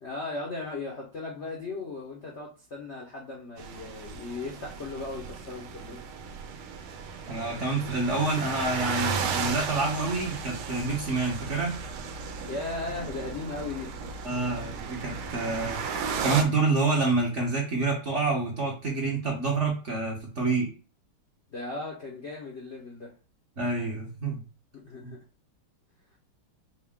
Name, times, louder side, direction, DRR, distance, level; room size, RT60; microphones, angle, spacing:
voice 1, 0.0-6.0 12.5-13.9 21.5-23.1 24.7-25.2, left 3 dB, 55° left, -2 dB, 0.7 m, -37 dB
sound 1, 3.6-16.4, right 6 dB, 85° right, 1.5 m, -35 dB
voice 2, 7.3-11.8 14.2-15.8 16.2-20.7 23.6-24.4 25.0-25.1, right 3 dB, 45° right, -3 dB, 1.0 m, -27 dB
5.1 x 2.2 x 3.6 m, 0.35 s
omnidirectional pair, 2.2 m